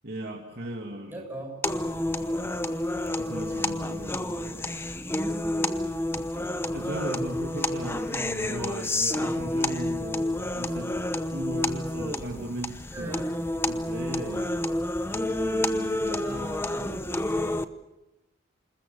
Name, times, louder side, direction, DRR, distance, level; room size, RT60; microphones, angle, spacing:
voice 1, 0.0-1.2 2.1-2.5 3.2-4.8 6.2-6.3 6.7-10.9 11.3-14.7 15.1-16.3, right 1 dB, 50° right, 1 dB, 2.4 m, -37 dB
voice 2, 1.1-1.9 12.9-13.4 16.1-17.2, right 1 dB, 10° right, -1 dB, 7.6 m, -40 dB
sound 1, 1.6-17.6, left 1 dB, 10° left, 0.8 m, -29 dB
28.0 x 20.5 x 7.1 m, 0.99 s
head